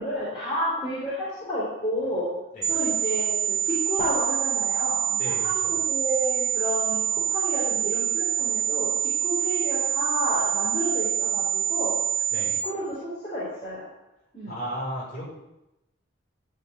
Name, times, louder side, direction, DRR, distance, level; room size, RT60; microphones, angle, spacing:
voice 1, 0.0-2.3 2.7-12.0 12.6-13.8 14.3-14.5, equal, 25° left, -8 dB, 4.0 m, -31 dB
sound 1, 2.6-12.6, right 9 dB, 15° right, 1.9 m, -26 dB
voice 2, 5.2-5.7 12.3-12.5 14.5-15.3, equal, 40° left, -5 dB, 6.0 m, -34 dB
13.5 x 5.9 x 9.3 m, 0.93 s
head